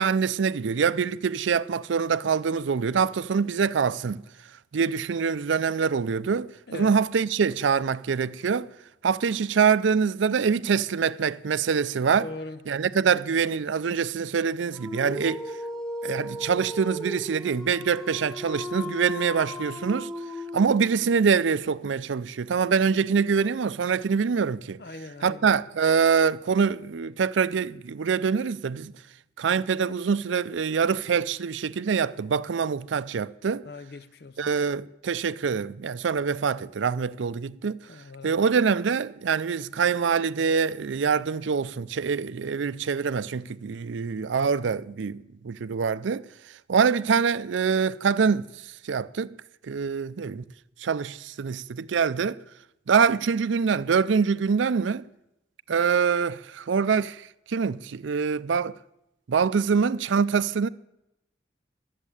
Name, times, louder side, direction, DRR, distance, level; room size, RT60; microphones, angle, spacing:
voice 1, 0.0-4.2 4.7-8.7 9.0-12.3 12.7-15.4 16.0-20.1 20.5-24.8 25.2-28.9 29.4-33.7 34.4-37.8 38.2-45.2 45.4-46.3 46.7-48.5 48.8-49.3 49.7-50.4 50.8-52.4 52.9-55.0 55.7-57.2 57.5-58.7 59.3-60.7, right 6 dB, 85° right, 0.4 m, -25 dB
voice 2, 12.2-12.6 13.0-13.1 24.8-25.5 33.7-34.4 37.9-38.4, left 2 dB, 55° left, 0.6 m, -40 dB
Dog, 14.7-21.1, left 1 dB, 5° left, 0.7 m, -36 dB
12.0 x 7.4 x 9.8 m
head